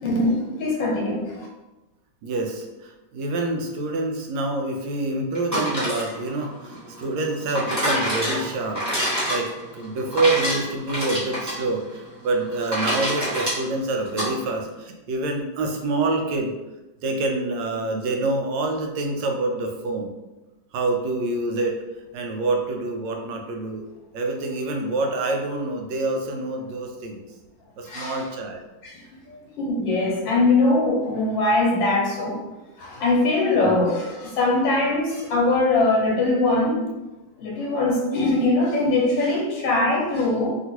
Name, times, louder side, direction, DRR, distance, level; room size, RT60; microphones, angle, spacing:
voice 1, 0.0-1.5 27.9-28.2 28.8-32.4 32.8-36.9 37.4-40.5, left 2 dB, 80° left, -2 dB, 1.4 m, -22 dB
voice 2, 2.2-8.8 9.3-16.5 17.0-20.1 20.7-21.8 22.1-23.8 24.1-27.2 27.8-28.6 33.6-33.8, right 2 dB, 80° right, 3 dB, 1.2 m, -26 dB
sound 1, 5.3-14.3, equal, 15° right, 0.6 m, -27 dB
3.0 x 2.8 x 2.8 m, 1.1 s
omnidirectional pair, 2.0 m